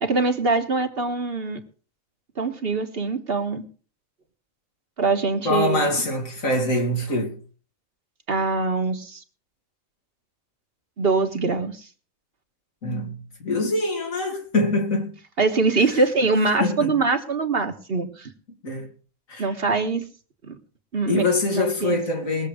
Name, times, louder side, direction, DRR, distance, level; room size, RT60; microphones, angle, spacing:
voice 1, 0.0-1.6 2.4-3.6 5.0-5.9 8.3-9.2 11.0-11.9 15.4-18.3 19.4-20.0 20.4-20.6 20.9-21.3 21.5-22.0, right 3 dB, 50° right, 1.6 m, -23 dB
voice 2, 5.4-7.4 12.8-15.1 16.6-16.9 18.6-18.9 19.3-19.5 21.1-22.5, left 2 dB, 90° left, 3.1 m, -24 dB
21.0 x 7.4 x 5.0 m
omnidirectional pair, 1.4 m